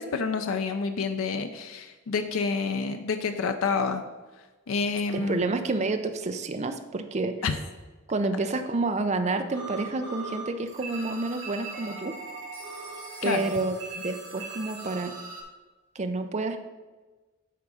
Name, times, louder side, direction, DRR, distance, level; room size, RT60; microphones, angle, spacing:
voice 1, 0.0-4.0 4.7-5.4 7.4-7.5 13.2-13.5, left 4 dB, 90° left, 7 dB, 0.5 m, -28 dB
voice 2, 5.1-7.4 8.1-12.1 13.2-15.1 16.0-16.6, right 3 dB, 35° right, 7 dB, 0.5 m, -29 dB
sound 1, 9.5-10.4 10.7-15.4, right 3 dB, 70° right, 2.4 m, -39 dB
9.1 x 3.6 x 6.1 m, 1.2 s
head